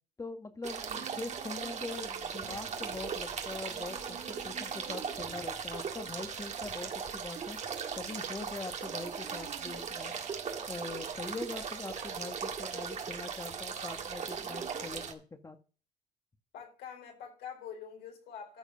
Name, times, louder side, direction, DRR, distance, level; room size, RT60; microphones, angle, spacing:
voice 1, 0.2-7.6 8.0-10.1 10.7-15.6, left 3 dB, 20° left, 1.7 m, -42 dB
sound 1, 0.6-15.1, right 6 dB, 45° right, 1.8 m, -38 dB
voice 2, 16.5-18.6, left 7 dB, 80° left, 4.4 m, -45 dB
13.5 x 4.9 x 5.7 m
cardioid pair, 110°, 17 cm